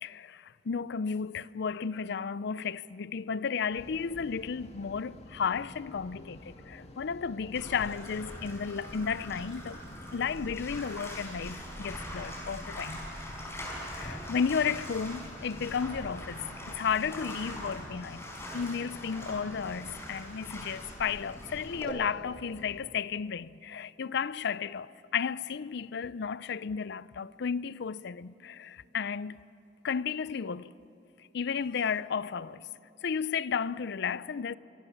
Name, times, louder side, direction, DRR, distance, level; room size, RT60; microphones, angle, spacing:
voice 1, 0.0-9.8 10.1-13.0 13.9-29.4 29.8-30.7 31.3-32.7 33.0-34.5, left 6 dB, 60° left, 0.5 m, -33 dB
sound 1, 3.7-22.9, equal, 35° left, 1.8 m, -50 dB
Bathtub (filling or washing), 7.5-21.9, equal, 15° left, 4.7 m, -42 dB
25.5 x 23.0 x 7.2 m
head